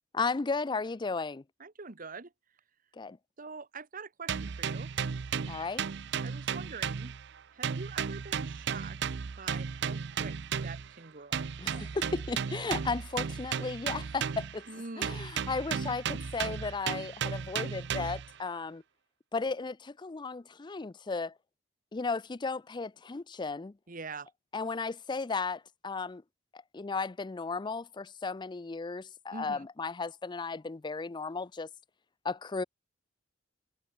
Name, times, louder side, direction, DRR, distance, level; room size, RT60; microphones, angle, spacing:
voice 1, 0.1-1.4 3.0-3.2 5.5-5.8 11.6-14.7 15.0-18.8 19.3-21.3 21.9-23.7 24.5-26.2 26.5-31.7 32.2-32.6, left 4 dB, 25° left, 0.4 m, -35 dB
voice 2, 1.6-2.3 3.4-4.9 6.2-7.1 7.5-11.5 14.7-15.1 23.9-24.3 29.3-29.7, right 4 dB, 45° right, 1.3 m, -45 dB
sound 1, 4.3-7.4 7.6-10.9 11.3-14.7 15.0-18.3, right 7 dB, 65° right, 0.5 m, -34 dB
head